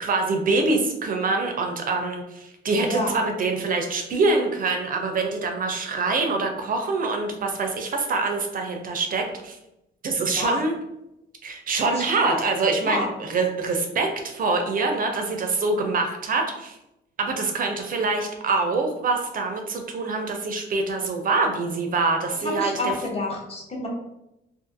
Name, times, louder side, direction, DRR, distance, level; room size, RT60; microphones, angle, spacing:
voice 1, 0.0-9.6 10.0-10.7 11.4-16.8 17.2-22.9, right 3 dB, 45° right, 4 dB, 0.4 m, -25 dB
voice 2, 12.0-12.4 12.8-13.1 22.4-23.9, left 2 dB, 30° left, -2 dB, 0.8 m, -28 dB
2.5 x 2.4 x 2.5 m, 0.90 s
cardioid pair, 90°, 20 cm